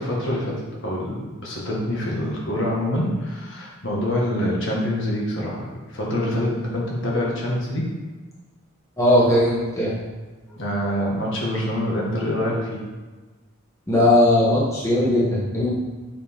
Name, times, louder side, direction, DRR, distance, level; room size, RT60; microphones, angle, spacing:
voice 1, 0.0-7.9 10.6-12.8, left 1 dB, 60° left, -3 dB, 1.8 m, -25 dB
voice 2, 9.0-10.0 13.9-15.7, left 1 dB, 15° left, -7 dB, 1.5 m, -18 dB
7.7 x 5.6 x 3.7 m, 1.3 s
head